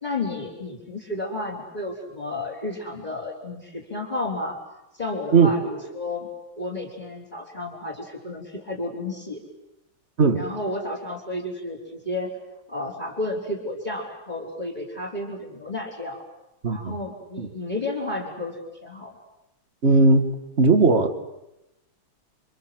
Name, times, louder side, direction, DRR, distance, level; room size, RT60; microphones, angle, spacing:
voice 1, 0.0-4.6 5.0-6.3 6.6-9.4 10.3-12.3 12.7-16.2 16.7-19.1, left 2 dB, 20° left, -1 dB, 4.1 m, -32 dB
voice 2, 16.6-16.9 17.4-17.5 19.8-20.3 20.6-21.2, right 3 dB, 35° right, 7 dB, 2.0 m, -17 dB
28.5 x 25.5 x 7.7 m, 0.90 s
omnidirectional pair, 2.2 m